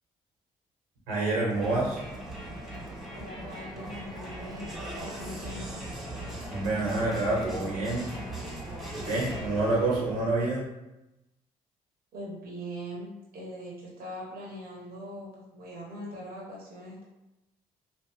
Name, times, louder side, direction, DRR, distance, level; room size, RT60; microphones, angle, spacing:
voice 1, 1.1-2.0 6.5-8.1 9.0-10.6, right 2 dB, 85° right, -6 dB, 1.3 m, -27 dB
Crowd, 1.5-10.3, right 1 dB, ahead, 1.2 m, -39 dB
voice 2, 3.1-5.8 12.1-15.3 15.5-17.0, equal, 60° right, -3 dB, 1.1 m, -41 dB
3.2 x 2.6 x 3.3 m, 0.95 s
hypercardioid pair, 50°, 18 cm